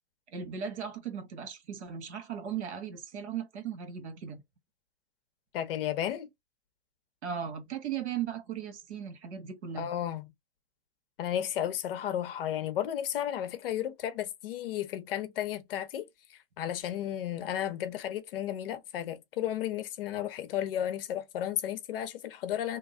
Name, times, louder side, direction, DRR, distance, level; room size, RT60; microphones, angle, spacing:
voice 1, 0.3-4.4 7.2-9.9, right 8 dB, 85° right, 1.4 m, -37 dB
voice 2, 5.5-6.3 9.8-10.2 11.2-22.8, left 11 dB, 55° left, 0.8 m, -33 dB
2.9 x 2.2 x 3.6 m
supercardioid pair, 160°, 33 cm